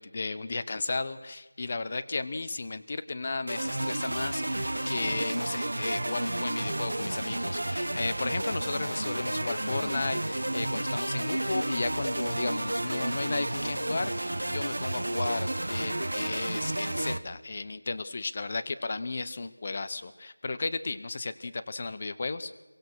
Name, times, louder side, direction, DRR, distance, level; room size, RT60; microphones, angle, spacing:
voice 1, 0.0-22.5, left 3 dB, 25° left, 12 dB, 0.8 m, -34 dB
sound 1, 3.5-17.2, right 1 dB, 65° right, 1.2 m, -31 dB
26.0 x 23.5 x 6.2 m, 1.1 s
figure-of-eight pair, 175°, 0 cm